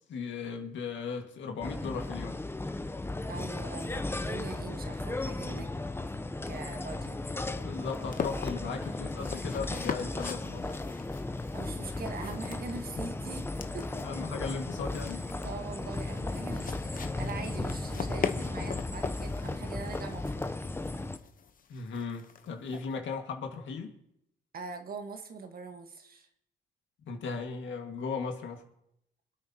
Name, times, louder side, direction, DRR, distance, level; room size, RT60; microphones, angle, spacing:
voice 1, 0.1-2.4 7.6-10.8 13.0-13.1 14.0-15.3 21.7-23.9 27.0-28.6, left 5 dB, 70° left, 1.9 m, -37 dB
sound 1, 1.6-21.2, left 2 dB, 10° left, 0.7 m, -36 dB
voice 2, 3.3-5.7 6.5-7.2 11.5-13.5 13.7-14.0 15.4-20.7 22.7-22.8 24.5-26.3, right 4 dB, 50° right, 1.5 m, -42 dB
sound 2, 6.6-22.9, left 6 dB, 45° left, 0.9 m, -42 dB
26.0 x 8.8 x 2.9 m
cardioid pair, 90°, 20 cm